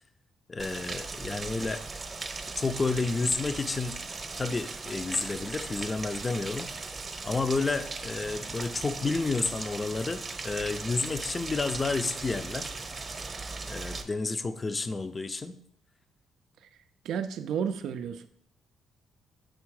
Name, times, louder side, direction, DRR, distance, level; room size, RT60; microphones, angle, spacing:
voice 1, 0.5-1.8 2.6-4.0 4.4-6.9 7.2-12.7 13.7-15.6, left 3 dB, 25° left, 10 dB, 0.4 m, -30 dB
Rain, 0.6-14.0, right 3 dB, 30° right, 0.7 m, -38 dB
voice 2, 17.0-18.3, right 7 dB, 75° right, 9 dB, 0.3 m, -32 dB
6.4 x 3.4 x 4.7 m, 0.65 s
cardioid pair, 90°, 0 cm